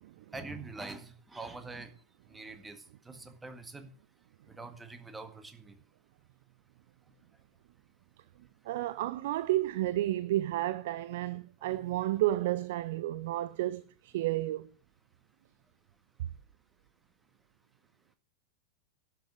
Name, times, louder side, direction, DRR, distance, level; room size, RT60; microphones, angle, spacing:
voice 1, 0.3-1.9 2.3-3.9 4.6-5.8 11.6-12.1, right 3 dB, 10° right, 1.8 m, -45 dB
voice 2, 8.7-14.7, right 15 dB, 55° right, 0.5 m, -31 dB
11.5 x 8.2 x 7.5 m
figure-of-eight pair, 90°, 0 cm